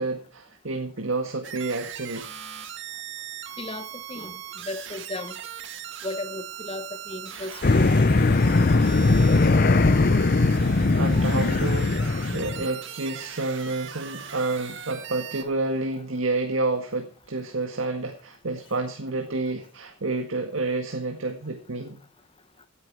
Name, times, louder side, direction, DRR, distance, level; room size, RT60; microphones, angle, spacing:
voice 1, 0.0-2.3 10.9-22.0, right 3 dB, 85° right, 1.8 m, -29 dB
sound 1, 1.4-15.4, right 8 dB, 65° right, 2.0 m, -39 dB
voice 2, 3.6-5.4 6.0-8.0, left 2 dB, 30° left, 1.2 m, -35 dB
sound 2, 7.6-12.7, left 3 dB, 50° left, 0.7 m, -20 dB
16.5 x 9.6 x 4.7 m
head